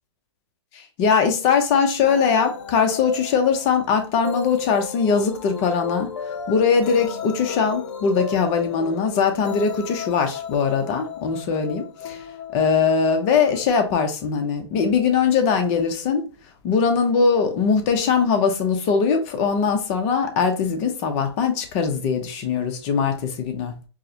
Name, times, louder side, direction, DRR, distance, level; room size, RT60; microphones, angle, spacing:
voice 1, 0.7-6.1 6.5-12.2 12.5-16.3 16.6-23.7, left 6 dB, 35° left, 0.7 m, -21 dB
sound 1, 2.0-13.7, left 7 dB, 75° left, 0.7 m, -34 dB
4.7 x 2.1 x 2.8 m
hypercardioid pair, 145°, 15 cm